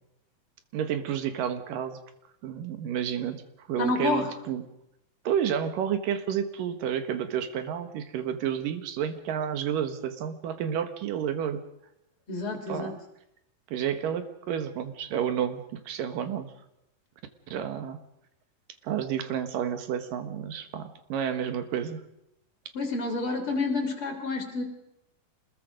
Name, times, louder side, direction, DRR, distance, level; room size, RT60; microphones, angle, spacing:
voice 1, 0.7-2.0 2.4-3.4 3.7-4.7 5.2-11.6 12.7-12.9 13.7-16.5 17.5-18.0 18.8-22.0, right 9 dB, 70° right, 9 dB, 3.0 m, -30 dB
voice 2, 3.8-4.3 12.3-12.9 22.7-24.6, left 3 dB, 35° left, 3 dB, 4.0 m, -29 dB
26.5 x 20.5 x 5.2 m, 0.84 s
omnidirectional pair, 4.2 m